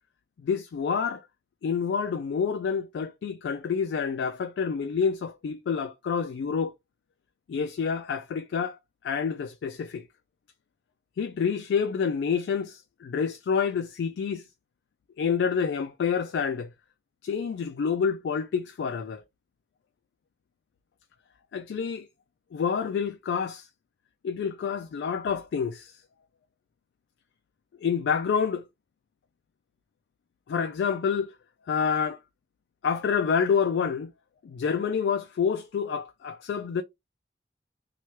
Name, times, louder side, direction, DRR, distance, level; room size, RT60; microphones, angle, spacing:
voice 1, 0.4-1.2 1.6-6.7 7.5-8.8 9.0-10.0 11.2-14.4 15.2-16.7 17.2-19.2 21.5-22.1 22.5-23.7 24.2-25.9 27.8-28.6 30.5-31.3 31.7-32.2 32.8-34.1 34.4-36.8, left 6 dB, 85° left, 0.3 m, -28 dB
2.8 x 2.2 x 3.0 m
head